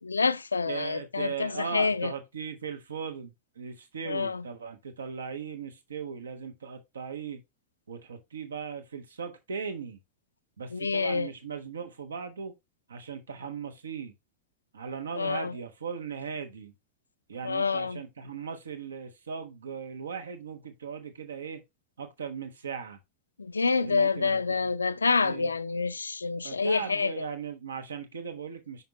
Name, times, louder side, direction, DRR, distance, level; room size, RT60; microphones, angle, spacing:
voice 1, 0.0-2.1 4.1-4.4 10.7-11.3 15.2-15.5 17.4-18.0 23.4-27.1, left 4 dB, 75° left, 0.3 m, -27 dB
voice 2, 0.7-7.4 7.9-10.0 10.6-12.5 12.9-14.1 14.7-16.7 17.3-21.6 22.0-23.0 23.8-24.7 25.2-25.5 26.4-28.8, right 6 dB, 70° right, 1.1 m, -38 dB
5.8 x 5.5 x 2.9 m
figure-of-eight pair, 90°, 0 cm